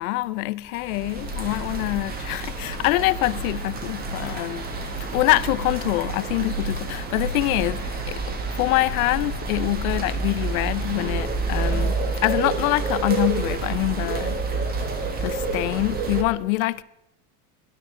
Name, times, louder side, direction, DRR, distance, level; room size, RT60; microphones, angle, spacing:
voice 1, 0.0-4.7 5.0-11.9 12.2-14.5 15.2-16.8, left 19 dB, 80° left, 0.7 m, -25 dB
sound 1, 0.7-16.2, right 3 dB, 20° right, 1.3 m, -28 dB
19.0 x 11.5 x 3.7 m
supercardioid pair, 160°, 42 cm